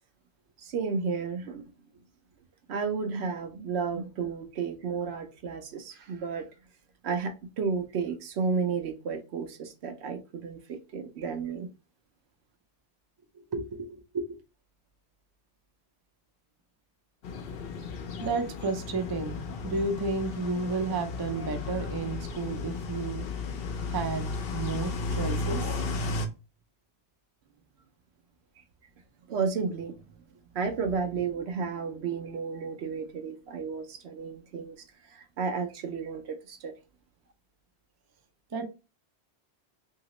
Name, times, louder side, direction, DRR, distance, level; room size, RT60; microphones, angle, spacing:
voice 1, 0.6-1.7 2.7-6.5 7.0-11.7 28.6-28.7 29.3-29.9 30.5-36.7, right 5 dB, 80° right, 0.9 m, -32 dB
voice 2, 13.4-14.3 18.2-23.3 23.9-26.0 38.5-38.6, right 3 dB, 35° right, 0.4 m, -32 dB
sound 1, 17.2-26.3, left 3 dB, 65° left, 0.8 m, -34 dB
2.9 x 2.7 x 3.0 m
omnidirectional pair, 1.1 m